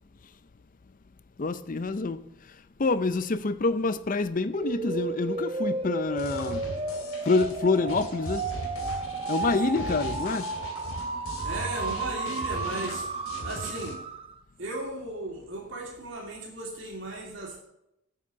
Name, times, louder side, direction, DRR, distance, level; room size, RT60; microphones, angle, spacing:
voice 1, 1.4-2.3 2.8-6.6 7.2-8.5 9.3-10.5, left 3 dB, 40° left, 0.5 m, -27 dB
sound 1, 4.5-14.4, right 3 dB, 25° right, 0.9 m, -33 dB
sound 2, 6.2-13.9, left 1 dB, 85° left, 2.4 m, -39 dB
voice 2, 9.3-10.4 11.4-13.1 13.4-14.0 14.6-17.6, right 2 dB, 60° right, 2.6 m, -36 dB
8.5 x 7.4 x 6.2 m
head